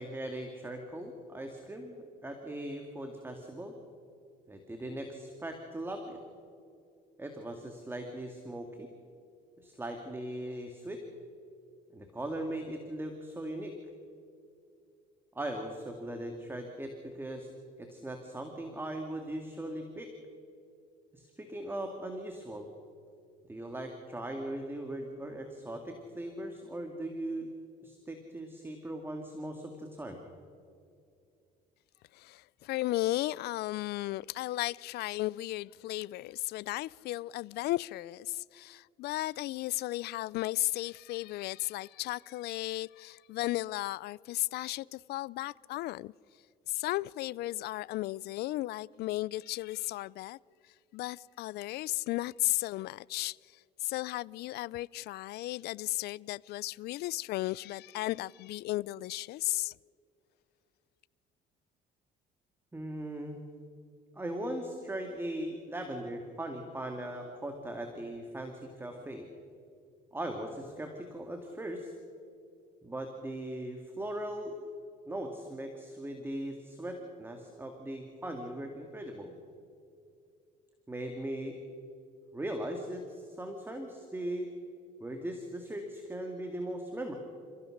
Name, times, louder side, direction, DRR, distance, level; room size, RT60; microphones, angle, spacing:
voice 1, 0.0-3.8 4.5-6.2 7.2-8.9 9.6-11.0 11.9-13.7 15.4-17.5 17.8-20.1 21.1-22.7 23.5-27.5 27.8-30.2 62.7-63.4 64.2-69.3 70.1-71.9 72.8-74.6 75.1-79.3 80.9-81.6 82.3-84.5 85.0-87.1, right 1 dB, 15° right, 2.2 m, -39 dB
voice 2, 32.1-46.1 46.7-50.4 50.9-59.7, left 17 dB, 70° left, 0.4 m, -35 dB
29.0 x 15.5 x 6.5 m
cardioid pair, 110°, 17 cm